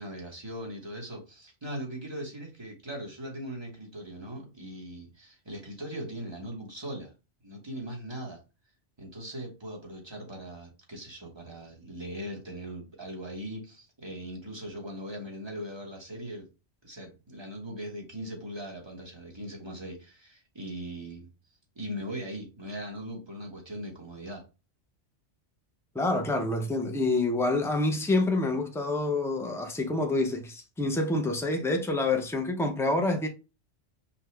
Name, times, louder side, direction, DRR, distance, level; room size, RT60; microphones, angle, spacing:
voice 1, 0.0-7.1 7.4-8.4 9.0-16.5 16.8-21.3 21.7-24.4, equal, 25° right, 1.1 m, -40 dB
voice 2, 25.9-33.3, left 2 dB, 5° left, 0.3 m, -27 dB
5.5 x 2.3 x 3.2 m
omnidirectional pair, 1.2 m